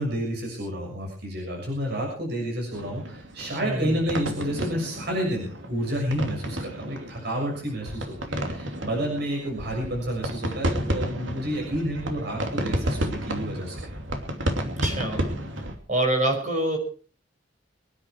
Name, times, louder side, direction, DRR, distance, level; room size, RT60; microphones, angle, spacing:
voice 1, 0.0-13.9, equal, 60° right, 0 dB, 6.7 m, -30 dB
sound 1, 2.7-15.7, equal, 85° right, 2.9 m, -31 dB
voice 2, 3.6-4.0 14.6-15.3 15.9-16.8, right 1 dB, 40° right, 4 dB, 5.5 m, -26 dB
24.5 x 10.0 x 4.7 m, 0.41 s
head